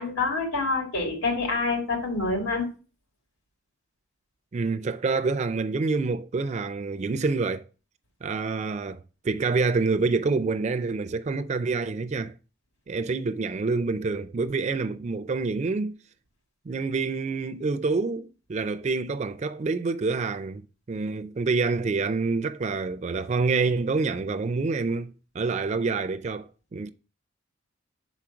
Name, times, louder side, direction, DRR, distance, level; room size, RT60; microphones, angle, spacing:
voice 1, 0.0-2.7, left 3 dB, 90° left, 3.8 m, -27 dB
voice 2, 4.5-7.6 8.2-12.3 12.9-16.0 16.7-20.6 20.9-26.9, right 4 dB, 35° right, 0.4 m, -27 dB
6.5 x 5.0 x 5.8 m
head